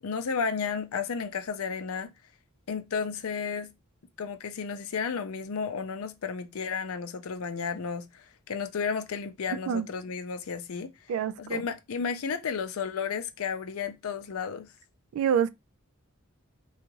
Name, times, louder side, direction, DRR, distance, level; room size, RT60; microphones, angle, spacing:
voice 1, 0.0-2.1 2.7-3.7 4.2-10.9 11.4-14.7, left 6 dB, 80° left, 0.5 m, -33 dB
voice 2, 11.1-11.6 15.1-15.5, right 8 dB, 75° right, 0.3 m, -26 dB
3.8 x 2.3 x 3.0 m
head